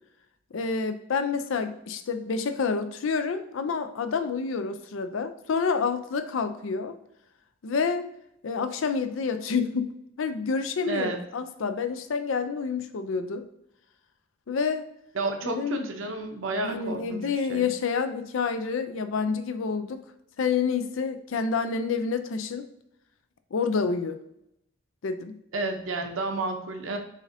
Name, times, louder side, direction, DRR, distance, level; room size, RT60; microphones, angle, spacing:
voice 1, 0.5-7.0 7.6-8.0 8.4-9.9 10.2-13.4 14.5-14.8 15.4-15.9 16.6-20.0 20.4-22.7 23.5-24.2 25.0-25.4, left 5 dB, 75° left, 9 dB, 0.4 m, -28 dB
voice 2, 10.9-11.2 15.1-17.6 25.5-27.0, right 2 dB, 80° right, 4 dB, 0.7 m, -31 dB
6.3 x 2.5 x 2.7 m, 0.79 s
head